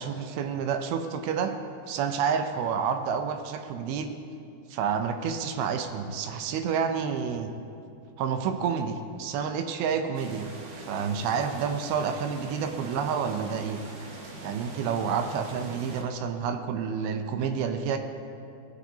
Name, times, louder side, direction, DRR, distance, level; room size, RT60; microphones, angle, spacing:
voice 1, 0.0-1.5 1.9-4.1 4.7-7.5 8.2-10.5 10.8-13.8 14.4-18.0, right 6 dB, 80° right, 7 dB, 2.5 m, -29 dB
sound 1, 10.1-16.0, right 2 dB, 65° right, 2.3 m, -43 dB
19.5 x 7.3 x 2.7 m, 2.5 s
omnidirectional pair, 4.6 m